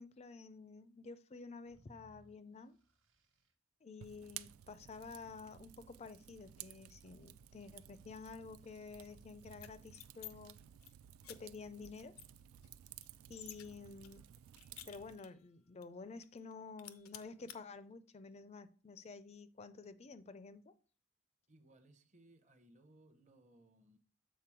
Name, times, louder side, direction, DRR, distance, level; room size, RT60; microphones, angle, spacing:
voice 1, 0.0-2.8 3.8-10.6 11.3-12.1 13.3-14.2 14.9-20.7, left 4 dB, 30° left, 0.4 m, -51 dB
sound 1, 1.6-3.5 6.3-8.3, right 1 dB, 70° right, 1.0 m, -70 dB
Fire, 4.0-15.2, right 11 dB, 85° right, 0.3 m, -56 dB
sound 2, 9.5-10.3 10.6-10.9 11.2-11.4 11.8-11.9 12.2-13.7 14.0-15.4 15.8-15.9 16.2-16.5 16.8-17.6, left 12 dB, 90° left, 0.5 m, -53 dB
voice 2, 21.5-24.0, right 1 dB, 35° right, 0.8 m, -65 dB
7.5 x 4.0 x 4.6 m
head